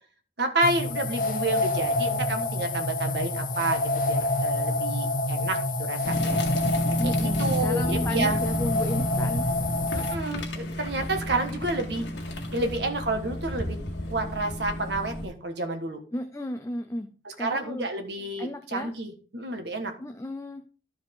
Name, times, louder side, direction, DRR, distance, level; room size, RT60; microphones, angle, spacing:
voice 1, 0.4-3.8 4.1-6.4 7.0-8.4 9.9-12.0 12.5-13.8 14.1-16.0 17.2-19.9, right 2 dB, 65° right, 5 dB, 1.5 m, -30 dB
sound 1, 0.6-10.1, left 2 dB, 45° left, 0.9 m, -27 dB
sound 2, 6.0-15.3, left 1 dB, 80° left, 1.8 m, -31 dB
voice 2, 7.0-9.5 16.1-17.9 18.4-18.9 20.0-20.6, left 1 dB, 15° left, 7 dB, 0.5 m, -34 dB
12.5 x 4.9 x 3.7 m, 0.39 s
head